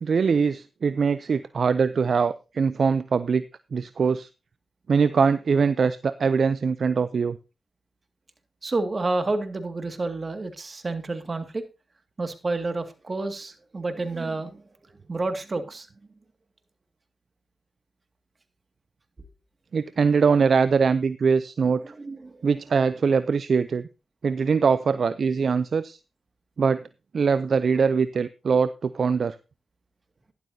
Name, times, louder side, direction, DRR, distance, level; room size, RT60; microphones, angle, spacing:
voice 1, 0.0-3.4 3.7-4.3 4.9-7.4 19.7-21.8 22.4-23.8 24.2-26.0 26.6-26.8 27.1-29.3, right 5 dB, 65° right, 15 dB, 0.5 m, -22 dB
voice 2, 8.6-11.6 12.2-15.9 21.8-22.6, right 2 dB, 45° right, 8 dB, 2.0 m, -30 dB
12.0 x 11.5 x 2.7 m, 0.29 s
supercardioid pair, 40°, 0 cm